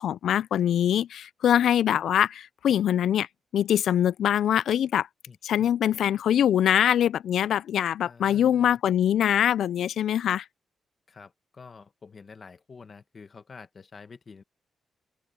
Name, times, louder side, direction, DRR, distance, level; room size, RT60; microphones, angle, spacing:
voice 1, 0.0-3.3 3.5-5.1 5.4-10.4, left 10 dB, 85° left, 0.3 m, -23 dB
voice 2, 5.3-5.7 8.0-8.8 11.1-14.4, left 5 dB, 35° left, 1.5 m, -48 dB
open air
wide cardioid pair, 160°, 0 cm